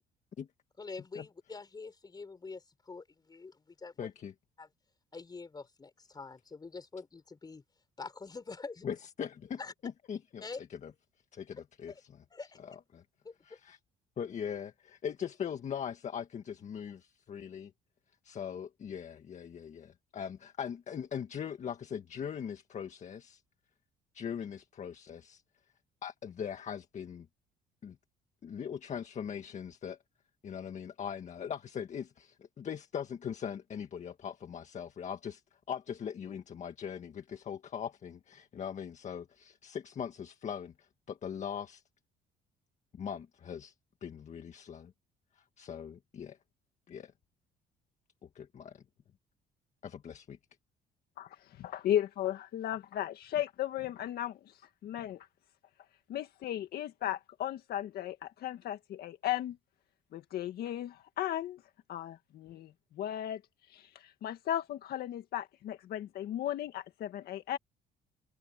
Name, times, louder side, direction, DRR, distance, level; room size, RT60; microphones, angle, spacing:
voice 1, 0.8-4.1 4.6-4.7 5.1-7.6 8.0-8.9 9.6-9.7 10.4-10.6 11.9-12.0 12.3-12.8 13.2-13.6, left 4 dB, 25° left, 4.8 m, -45 dB
voice 2, 4.0-4.3 8.8-10.4 10.7-10.9 11.3-11.9 12.9-13.0 13.4-13.8 14.2-17.7 18.2-23.4 24.1-25.4 26.0-27.3 27.8-28.0 28.4-30.0 30.4-35.4 35.7-41.8 42.9-43.7 44.0-44.9 45.3-46.4 46.9-47.1 48.2-48.8 49.8-50.4, left 8 dB, 45° left, 1.8 m, -40 dB
voice 3, 51.6-54.4 54.8-55.3 56.1-59.6 60.1-61.6 61.9-62.7 63.0-63.4 63.7-67.6, left 12 dB, 65° left, 1.8 m, -35 dB
open air
cardioid pair, 110°, 17 cm